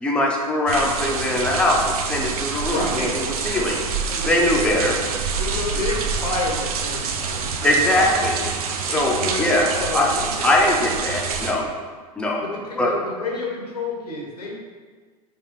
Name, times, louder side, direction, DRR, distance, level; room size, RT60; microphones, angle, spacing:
voice 1, 0.0-3.8 4.3-5.0 7.6-8.3 8.8-9.7 9.9-10.1 10.4-11.6 12.2-12.4 12.8-13.0, left 1 dB, 5° left, -1 dB, 0.5 m, -21 dB
sound 1, 0.7-11.5, right 5 dB, 70° right, 0.4 m, -27 dB
voice 2, 2.7-3.1 3.7-3.8 4.1-4.7 5.4-8.5 8.9-10.8 11.1-11.7 12.4-14.5, left 2 dB, 85° left, -2 dB, 0.9 m, -30 dB
3.5 x 3.1 x 3.0 m, 1.5 s
hypercardioid pair, 85°, 20 cm